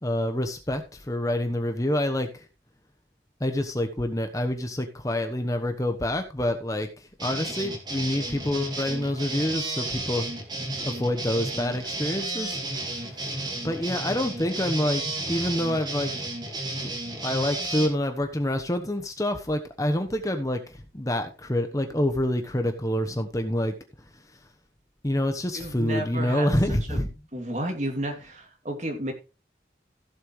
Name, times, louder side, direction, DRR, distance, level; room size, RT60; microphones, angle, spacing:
voice 1, 0.0-2.5 3.4-10.3 10.8-12.6 12.9-13.3 13.6-16.1 17.2-23.7 25.0-27.1, left 1 dB, 20° left, 6 dB, 1.1 m, -27 dB
sound 1, 7.2-17.9, right 2 dB, 25° right, 2.4 m, -32 dB
voice 2, 25.5-26.5 26.9-27.1 27.3-29.1, right 1 dB, 40° right, 4 dB, 2.6 m, -32 dB
15.5 x 7.7 x 3.2 m, 0.30 s
head